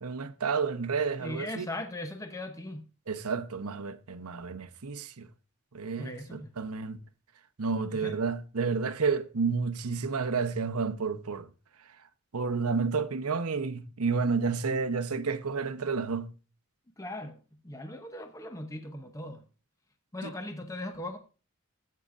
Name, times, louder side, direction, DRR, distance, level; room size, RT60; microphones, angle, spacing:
voice 1, 0.0-1.7 3.1-5.3 5.7-7.0 7.6-11.5 11.8-12.1 12.3-16.3 20.2-20.3, right 5 dB, 90° right, 0.9 m, -31 dB
voice 2, 1.2-2.9 6.0-6.5 7.9-8.2 17.0-19.4 20.1-21.2, left 1 dB, 15° left, 0.8 m, -39 dB
15.0 x 8.6 x 2.5 m
head